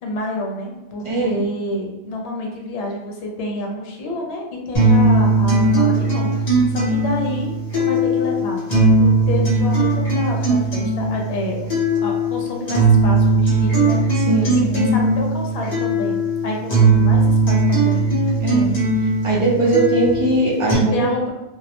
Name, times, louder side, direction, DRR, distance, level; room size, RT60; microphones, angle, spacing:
voice 1, 0.0-6.3 6.7-8.7 9.0-18.1 20.9-21.3, left 2 dB, 70° left, 0 dB, 0.8 m, -28 dB
voice 2, 1.0-1.4 14.2-14.9 18.4-18.7 19.2-21.0, right 2 dB, 35° right, -5 dB, 0.6 m, -20 dB
sound 1, 4.7-20.7, right 2 dB, 40° left, 0.9 m, -18 dB
2.2 x 2.0 x 2.8 m, 1.0 s
omnidirectional pair, 1.2 m